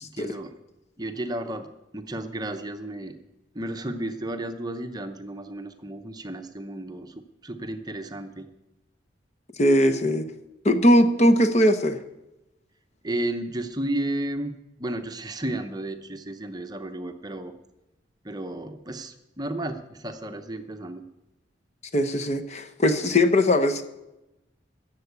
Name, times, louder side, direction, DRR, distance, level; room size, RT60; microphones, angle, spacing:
voice 1, 0.0-0.5 1.0-3.1 3.5-8.5 13.0-14.5 14.8-17.5 18.2-21.0, right 1 dB, 20° right, 7 dB, 0.8 m, -33 dB
voice 2, 9.6-10.3 10.6-12.0 21.9-23.8, left 1 dB, 35° left, 7 dB, 0.9 m, -20 dB
15.0 x 7.4 x 8.1 m, 0.94 s
head